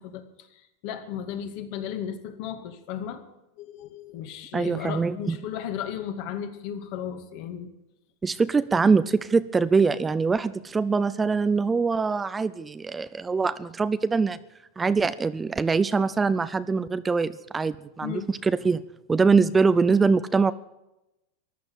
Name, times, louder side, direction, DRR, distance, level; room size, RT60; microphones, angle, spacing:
voice 1, 0.0-3.3 3.6-7.7 18.0-18.3, left 9 dB, 55° left, 7 dB, 2.1 m, -35 dB
voice 2, 4.5-5.4 8.2-14.4 14.8-18.8 19.1-20.5, right 4 dB, 15° right, 15 dB, 0.5 m, -23 dB
15.0 x 11.0 x 7.9 m, 0.93 s
supercardioid pair, 135°, 0 cm